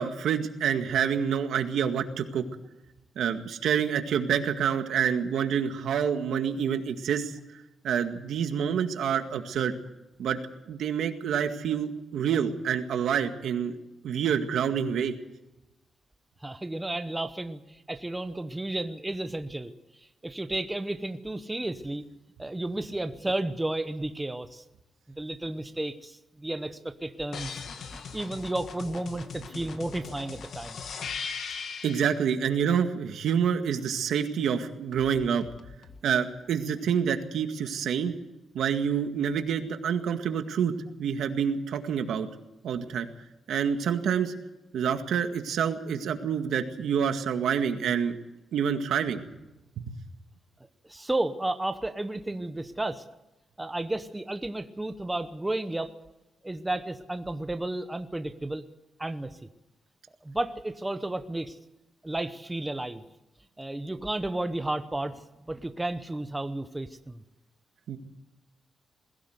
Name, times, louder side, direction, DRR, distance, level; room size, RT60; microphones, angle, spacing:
voice 1, 0.0-2.4 3.2-7.3 7.8-9.7 10.2-10.4 10.7-13.8 14.0-15.1 31.8-35.4 36.0-38.1 38.5-40.7 41.0-42.3 42.6-43.1 43.5-44.3 44.7-48.2 48.5-49.2 49.8-50.0 67.9-68.0, right 7 dB, 80° right, 7 dB, 2.0 m, -27 dB
voice 2, 16.4-19.7 20.2-22.0 22.4-24.6 25.2-27.6 27.9-30.8 50.9-53.0 53.6-55.9 56.4-58.6 59.0-59.4 60.2-61.6 62.0-63.0 63.6-67.2, right 1 dB, 10° right, 9 dB, 0.9 m, -32 dB
sound 1, 27.3-32.2 34.9-36.0, left 6 dB, 60° left, 1.8 m, -39 dB
21.5 x 16.5 x 8.0 m, 0.98 s
wide cardioid pair, 160°, 0 cm